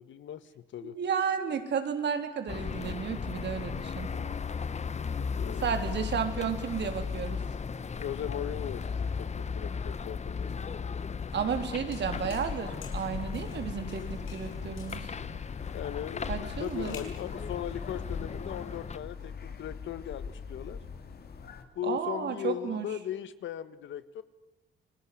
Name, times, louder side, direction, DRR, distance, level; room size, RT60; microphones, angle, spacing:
voice 1, 0.0-1.0 5.3-5.7 7.9-10.6 15.7-20.8 21.7-24.2, left 10 dB, 70° left, 13 dB, 1.7 m, -38 dB
voice 2, 0.8-4.1 5.5-7.4 11.3-15.1 16.3-17.0 21.8-22.9, right 7 dB, 60° right, 7 dB, 3.7 m, -32 dB
sound 1, 2.5-19.0, left 5 dB, 35° left, 1.2 m, -36 dB
sound 2, 11.3-11.6 11.9-12.5 12.8-13.6 13.9-15.1 16.1-17.2, left 7 dB, 90° left, 6.5 m, -50 dB
sound 3, 12.0-21.6, left 6 dB, 50° left, 3.3 m, -41 dB
29.0 x 20.5 x 9.7 m, 0.99 s
cardioid pair, 90°, 20 cm